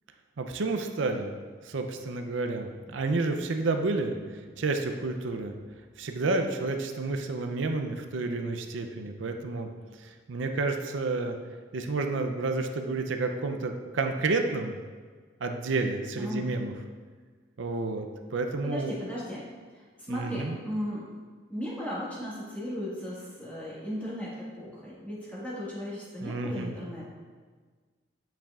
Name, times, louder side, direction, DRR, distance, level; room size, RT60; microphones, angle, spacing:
voice 1, 0.4-1.3 1.6-5.5 6.0-9.7 10.3-11.4 11.7-14.8 15.4-16.7 17.6-18.1 18.3-18.9 20.1-20.6 26.2-26.7, right 3 dB, 75° right, 5 dB, 0.5 m, -30 dB
voice 2, 16.2-16.6 18.6-19.4 20.1-21.0 21.5-27.1, equal, 5° left, -8 dB, 1.6 m, -36 dB
8.8 x 5.8 x 2.4 m, 1.5 s
head